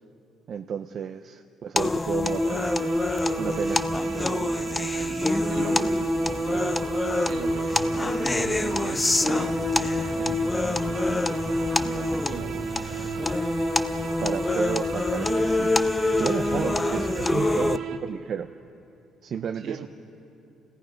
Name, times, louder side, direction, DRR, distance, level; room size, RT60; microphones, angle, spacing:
voice 1, 0.5-2.6 3.4-3.9 14.2-15.7 16.2-18.5 19.2-19.9, right 7 dB, 45° right, 7 dB, 0.6 m, -31 dB
sound 1, 1.8-17.8, left 3 dB, 15° left, 0.5 m, -26 dB
sound 2, 2.2-18.0, right 6 dB, 90° right, 1.5 m, -33 dB
voice 2, 5.0-9.6 10.2-11.5 11.8-13.5 16.4-16.9 19.5-19.9, right 7 dB, 65° right, 5 dB, 1.6 m, -41 dB
sound 3, 7.7-13.2, right 2 dB, 30° right, 1.5 m, -41 dB
29.5 x 17.5 x 5.2 m, 2.6 s
cardioid pair, 145°, 0 cm